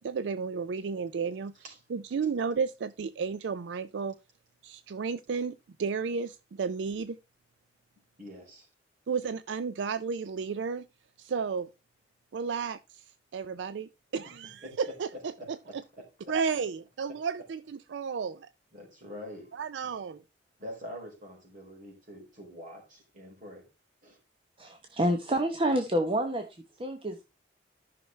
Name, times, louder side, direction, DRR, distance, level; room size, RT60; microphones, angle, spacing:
voice 1, 0.0-1.5 1.9-4.2 4.6-7.2 9.1-10.9 11.2-11.7 12.3-13.0 13.3-15.1 15.5-15.8 16.3-18.5 19.5-20.2, right 5 dB, 75° right, 0.4 m, -33 dB
voice 2, 8.2-8.7 13.5-13.6 14.2-14.3 14.6-16.6 17.1-17.5 18.7-19.5 20.6-23.6 24.0-24.2, equal, 45° right, 4.3 m, -46 dB
voice 3, 24.6-26.4 26.8-27.2, right 1 dB, 30° right, 0.9 m, -28 dB
13.5 x 5.8 x 3.2 m
head